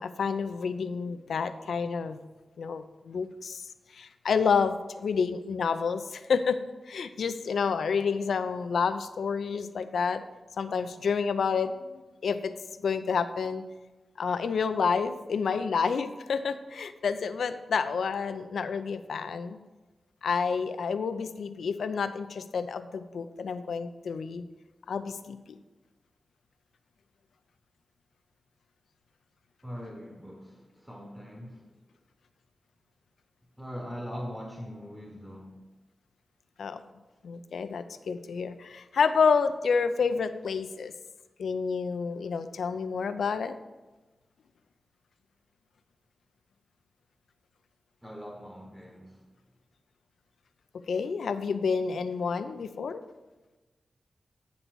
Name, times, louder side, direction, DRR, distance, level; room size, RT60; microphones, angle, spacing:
voice 1, 0.0-2.2 2.6-3.7 3.9-6.6 6.9-10.2 10.6-12.5 12.8-13.6 14.2-19.6 20.2-24.5 24.9-25.4 36.6-36.8 37.2-40.9 41.4-43.5 50.9-53.0, left 5 dB, 90° left, 10 dB, 0.5 m, -29 dB
voice 2, 29.6-31.7 33.6-35.6 48.0-49.2, equal, 5° right, 0 dB, 1.0 m, -41 dB
9.5 x 3.9 x 6.2 m, 1.2 s
wide cardioid pair, 95°, 0 cm